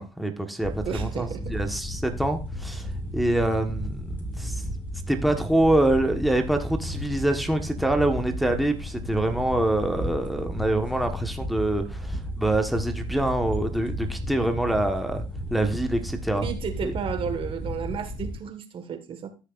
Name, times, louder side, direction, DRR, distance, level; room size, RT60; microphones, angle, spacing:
voice 1, 0.0-2.9 3.1-4.6 5.1-15.2 15.5-16.5 16.8-16.9, right 1 dB, ahead, 1.4 m, -25 dB
sound 1, 0.6-18.4, equal, 15° left, 5.1 m, -33 dB
voice 2, 0.8-1.5 16.4-19.3, right 7 dB, 50° right, 1.7 m, -33 dB
13.5 x 6.5 x 2.5 m
supercardioid pair, 70°, 11 cm